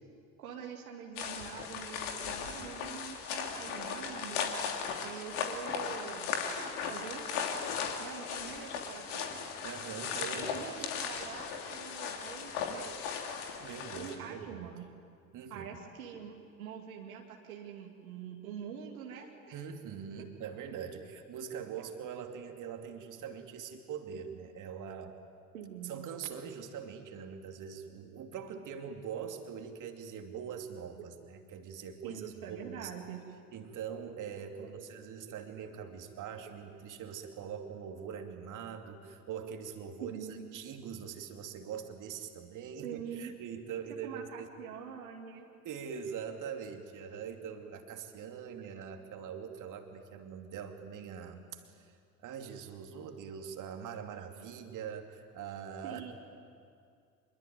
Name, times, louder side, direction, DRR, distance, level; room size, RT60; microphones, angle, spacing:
voice 1, 0.4-4.5 5.0-7.3 8.0-9.4 10.2-13.0 13.9-14.9 15.5-19.6 20.2-20.3 25.5-25.9 31.0-31.3 32.0-33.2 34.6-34.9 40.0-40.4 42.8-43.4 44.0-45.5 55.8-56.1, right 7 dB, 70° right, 1 dB, 2.3 m, -45 dB
Walking in forest slow, 1.2-14.2, left 6 dB, 60° left, 3.0 m, -37 dB
voice 2, 9.6-10.9 13.6-14.6 15.3-15.7 19.5-25.2 25.8-32.9 33.5-40.2 40.5-44.5 45.6-56.1, right 7 dB, 45° right, 4 dB, 2.7 m, -43 dB
26.0 x 22.0 x 9.3 m, 2.3 s
figure-of-eight pair, 60°, 44 cm